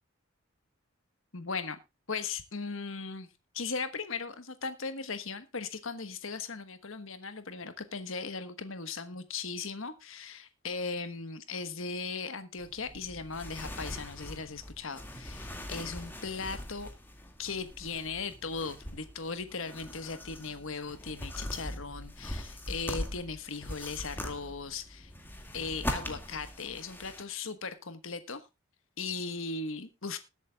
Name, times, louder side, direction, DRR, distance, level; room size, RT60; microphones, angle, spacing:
voice 1, 1.3-1.8 2.1-3.3 3.5-16.9 17.4-25.1 25.5-28.5 29.0-30.2, left 4 dB, 65° left, 10 dB, 1.3 m, -38 dB
sound 1, 12.6-27.2, left 1 dB, 10° left, 2.1 m, -41 dB
20.5 x 8.4 x 2.3 m, 0.26 s
head